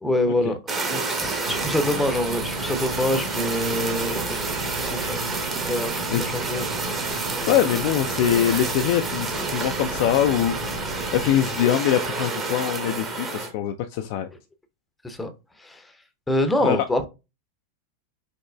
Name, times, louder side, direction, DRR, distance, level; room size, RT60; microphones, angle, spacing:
voice 1, 0.0-0.6 0.9-4.5 4.8-6.6 15.0-15.3 15.6-15.9 16.3-17.1, left 1 dB, 10° left, 7 dB, 0.6 m, -26 dB
Fire, 0.7-13.5, right 3 dB, 25° right, 0.9 m, -29 dB
Insect, 1.5-11.3, right 2 dB, 80° right, 1.2 m, -35 dB
voice 2, 7.5-10.6 11.1-14.3 16.6-16.8, left 10 dB, 45° left, 6 dB, 0.3 m, -23 dB
5.4 x 3.0 x 2.2 m, 0.27 s
figure-of-eight pair, 90°, 0 cm